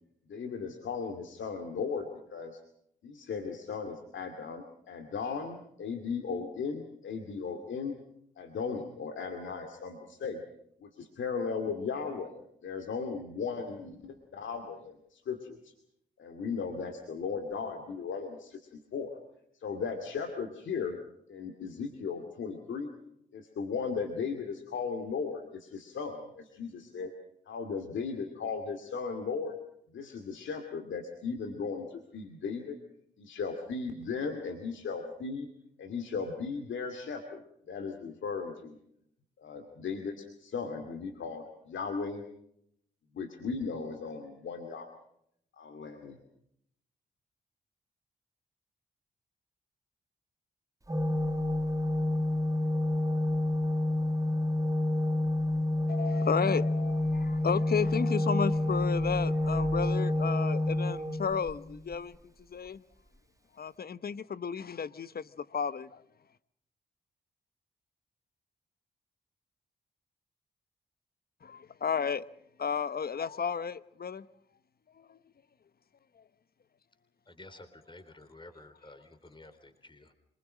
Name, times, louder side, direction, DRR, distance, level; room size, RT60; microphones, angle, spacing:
voice 1, 0.3-2.6 3.0-8.0 8.4-10.4 10.8-12.3 12.6-15.7 16.2-19.2 19.5-21.0 21.3-22.9 23.3-27.1 27.5-29.5 29.9-32.8 33.2-35.5 35.8-38.8 39.4-42.2 43.1-44.9 45.6-46.2, left 5 dB, 75° left, 2.4 m, -36 dB
Organ, 50.9-61.8, left 1 dB, 15° right, 1.3 m, -29 dB
voice 2, 55.9-62.2 62.5-62.8 63.6-66.0 71.4-72.2 72.6-74.3 75.0-75.2, left 6 dB, 50° left, 1.0 m, -33 dB
voice 3, 77.3-80.1, left 2 dB, 25° left, 3.8 m, -52 dB
26.5 x 21.0 x 6.4 m
supercardioid pair, 40°, 20 cm